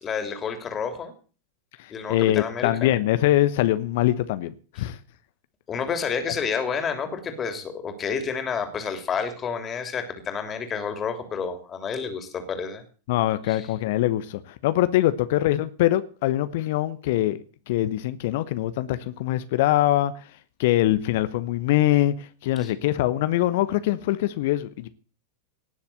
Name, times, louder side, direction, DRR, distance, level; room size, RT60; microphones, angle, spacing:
voice 1, 0.0-1.1 1.9-2.9 4.8-4.9 5.7-12.8 13.5-13.7 22.6-22.7, left 6 dB, 25° left, 7 dB, 3.1 m, -30 dB
voice 2, 1.8-5.0 13.1-17.4 17.7-20.1 20.6-24.9, left 14 dB, 50° left, 13 dB, 1.0 m, -23 dB
18.5 x 7.1 x 8.0 m, 0.40 s
figure-of-eight pair, 90°, 0 cm